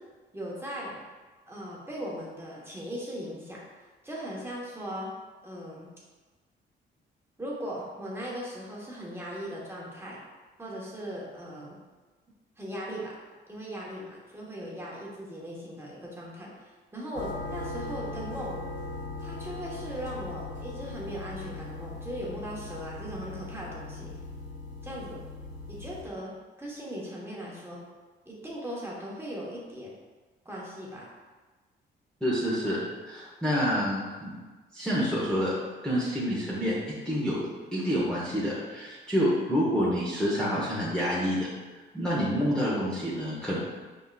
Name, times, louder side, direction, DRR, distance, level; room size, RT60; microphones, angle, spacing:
voice 1, 0.3-1.0 1.5-3.6 4.0-5.1 5.4-5.9 7.4-10.2 10.6-11.8 12.6-13.2 13.5-18.5 19.2-24.1 24.8-25.3 25.7-26.3 26.6-27.8 28.2-29.9 30.4-31.1, equal, 10° right, -5 dB, 1.2 m, -38 dB
sound 1, 17.2-26.0, left 3 dB, 65° left, 0.7 m, -39 dB
voice 2, 32.2-32.8 33.1-34.3 34.7-35.5 35.8-36.7 37.0-41.5 41.9-43.6, equal, 5° left, -8 dB, 1.0 m, -28 dB
5.3 x 3.6 x 2.4 m, 1.3 s
cardioid pair, 90°, 20 cm